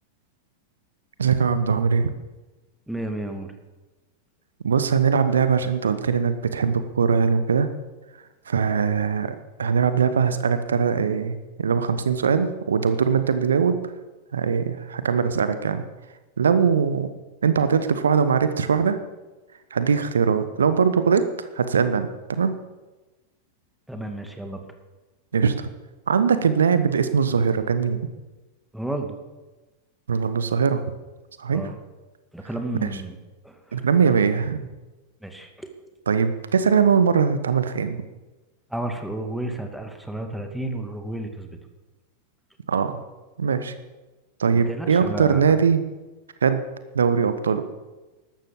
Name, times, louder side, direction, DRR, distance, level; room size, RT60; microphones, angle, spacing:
voice 1, 1.2-2.1 4.6-7.7 8.5-13.8 14.3-15.8 16.4-17.1 17.4-19.0 19.7-22.5 25.3-25.7 26.1-28.0 30.1-30.8 31.4-31.6 32.8-32.9 33.7-34.7 36.1-38.0 42.7-43.0 43.4-43.7 44.4-45.8 46.4-46.6 46.9-47.6, right 6 dB, 70° right, 11 dB, 1.1 m, -21 dB
voice 2, 2.9-3.5 23.9-24.6 28.7-29.2 31.5-31.7 32.3-33.2 33.4-33.8 35.2-35.7 38.7-41.5 44.5-45.6, right 1 dB, ahead, 5 dB, 2.3 m, -32 dB
13.5 x 12.5 x 7.2 m, 1.1 s
figure-of-eight pair, 90°, 0 cm